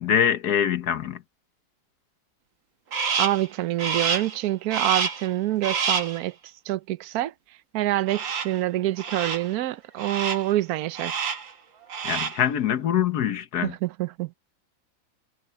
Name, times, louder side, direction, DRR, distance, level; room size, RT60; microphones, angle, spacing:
voice 1, 0.0-1.2 12.0-13.7, left 9 dB, 60° left, 1.5 m, -24 dB
Crow, 2.9-3.5 3.8-4.4 4.7-5.3 5.6-6.2 8.1-8.6 9.0-9.5 10.0-10.5 10.9-11.5 11.8-12.5, right 6 dB, 80° right, 2.5 m, -28 dB
voice 2, 3.2-6.3 6.7-7.3 7.7-11.1 13.6-14.3, right 15 dB, 65° right, 1.0 m, -26 dB
omnidirectional pair, 2.0 m